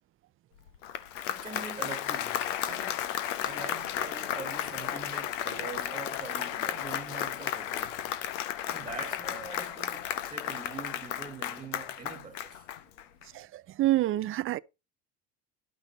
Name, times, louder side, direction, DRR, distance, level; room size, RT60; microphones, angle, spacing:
Applause, 0.7-13.2, left 11 dB, 85° left, 0.9 m, -34 dB
voice 1, 1.3-3.1 3.4-8.0 8.7-12.7, right 4 dB, 15° right, 1.4 m, -43 dB
sound 1, 4.6-8.4 9.1-10.8, left 5 dB, 25° left, 3.0 m, -52 dB
voice 2, 13.3-14.6, right 15 dB, 35° right, 0.5 m, -27 dB
11.5 x 6.1 x 4.1 m
supercardioid pair, 100°, 36 cm